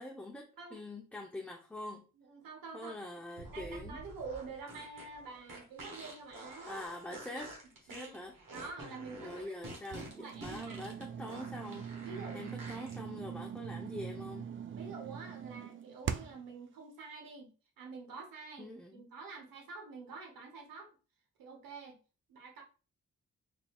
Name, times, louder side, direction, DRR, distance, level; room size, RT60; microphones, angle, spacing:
voice 1, 0.0-2.0 2.7-4.0 6.7-7.5 7.9-8.3 9.2-12.1 12.3-14.4 18.6-19.0, left 1 dB, 5° left, 0 dB, 0.6 m, -44 dB
voice 2, 2.1-2.9 3.5-6.8 7.3-7.4 7.9-8.2 8.5-9.3 9.9-10.8 12.0-12.4 14.7-20.9 21.4-22.0 22.3-22.6, right 4 dB, 90° right, 2 dB, 1.0 m, -47 dB
sound 1, 3.3-13.0, right 2 dB, 70° right, 1.4 m, -48 dB
sound 2, 9.8-16.5, right 7 dB, 40° right, 0.4 m, -42 dB
4.2 x 2.6 x 2.3 m, 0.35 s
supercardioid pair, 50°, 33 cm